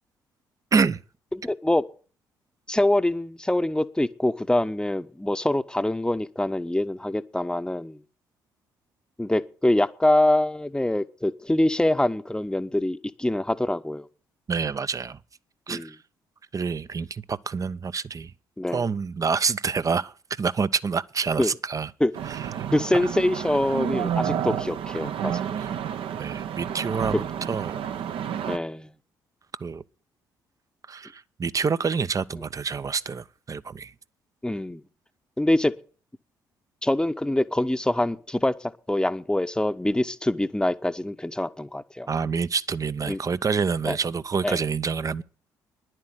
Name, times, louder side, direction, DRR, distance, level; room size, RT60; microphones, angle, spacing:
voice 1, 1.3-1.8 2.7-8.0 9.2-14.1 15.7-15.9 18.6-18.8 21.4-21.5 22.0-22.1 22.7-25.4 28.5-28.9 34.4-34.8 35.4-35.7 36.8-42.1 43.1-43.2 43.8-44.0 44.4-44.6, left 1 dB, 10° left, 0.9 m, -24 dB
voice 2, 14.5-15.2 15.7-16.0 16.5-18.3 18.7-21.9 22.3-22.7 25.6-25.7 26.2-27.7 29.6-29.8 30.9-33.9 42.1-45.2, right 5 dB, 35° right, 0.6 m, -27 dB
sound 1, 22.1-28.6, right 9 dB, 60° right, 0.8 m, -30 dB
10.5 x 7.6 x 9.4 m
hypercardioid pair, 45°, 10 cm